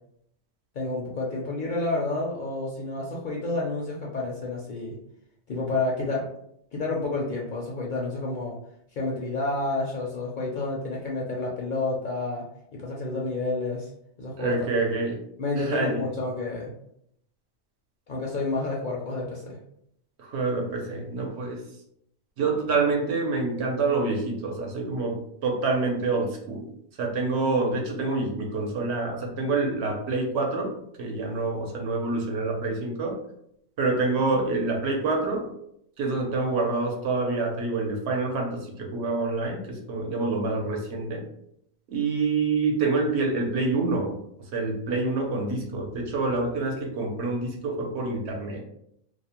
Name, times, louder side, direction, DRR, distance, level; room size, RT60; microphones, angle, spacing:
voice 1, 0.7-5.0 5.5-6.3 6.7-8.6 8.9-12.4 12.7-13.9 14.2-14.8 15.4-16.7 18.1-19.6, left 2 dB, 60° left, -3 dB, 0.5 m, -29 dB
voice 2, 14.4-15.2 15.6-16.0 20.2-21.6 22.4-26.7 27.0-33.2 33.8-35.5 36.0-41.2 41.9-44.2 44.5-48.6, right 3 dB, 70° right, 1 dB, 0.9 m, -27 dB
2.4 x 2.1 x 2.8 m, 0.74 s
omnidirectional pair, 1.2 m